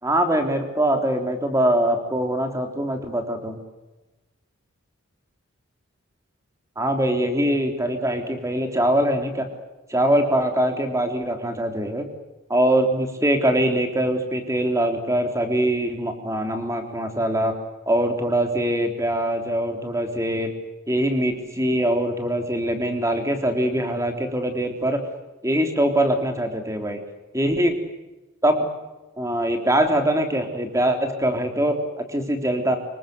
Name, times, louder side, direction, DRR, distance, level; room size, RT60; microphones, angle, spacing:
voice 1, 0.0-3.6 6.8-9.5 9.9-12.0 12.5-17.5 17.9-20.5 20.9-25.0 25.4-27.0 27.3-27.8 28.4-28.6 29.2-32.8, right 1 dB, 15° right, 5 dB, 3.6 m, -23 dB
26.5 x 23.0 x 7.9 m, 1.1 s
head